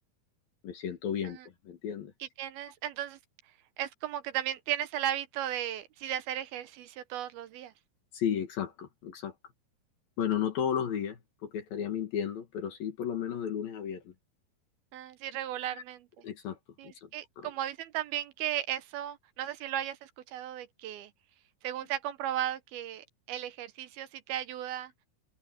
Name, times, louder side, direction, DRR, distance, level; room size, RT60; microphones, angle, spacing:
voice 1, 0.6-2.1 8.1-9.4 10.2-14.1 15.7-15.8 16.2-16.6 16.8-17.1 17.4-17.5, left 9 dB, 70° left, 3.8 m, -34 dB
voice 2, 2.4-3.2 3.8-7.7 14.9-16.1 16.8-21.1 21.6-24.9, right 11 dB, 75° right, 2.9 m, -35 dB
open air
omnidirectional pair, 4.4 m